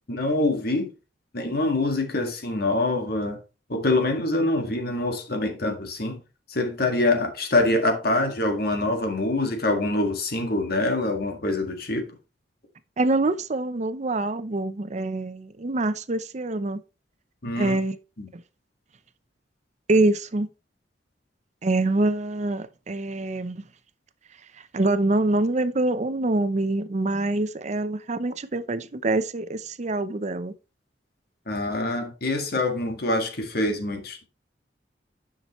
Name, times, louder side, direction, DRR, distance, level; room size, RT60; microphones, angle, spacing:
voice 1, 0.1-0.9 1.3-3.4 3.7-6.2 6.5-12.1 17.4-17.8 18.2-18.3 31.5-34.3, left 2 dB, 60° left, 1.8 m, -25 dB
voice 2, 13.0-16.8 17.6-18.0 18.3-18.4 19.9-20.5 21.6-23.6 24.7-30.5, right 2 dB, 40° right, 0.6 m, -25 dB
10.0 x 5.9 x 3.1 m
head